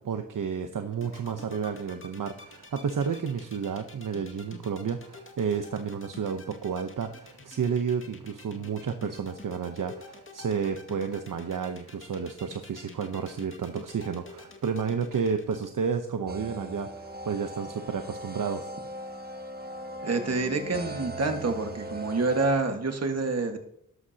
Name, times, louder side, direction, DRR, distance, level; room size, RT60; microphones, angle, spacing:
voice 1, 0.0-18.7, right 6 dB, 60° right, 6 dB, 0.9 m, -31 dB
sound 1, 0.9-15.7, left 3 dB, 35° left, 2.1 m, -47 dB
sound 2, 16.3-22.5, right 1 dB, 25° right, 1.5 m, -39 dB
voice 2, 20.0-23.6, right 3 dB, 45° right, 5 dB, 1.7 m, -27 dB
13.0 x 11.0 x 2.9 m, 0.74 s
cardioid pair, 70°, 36 cm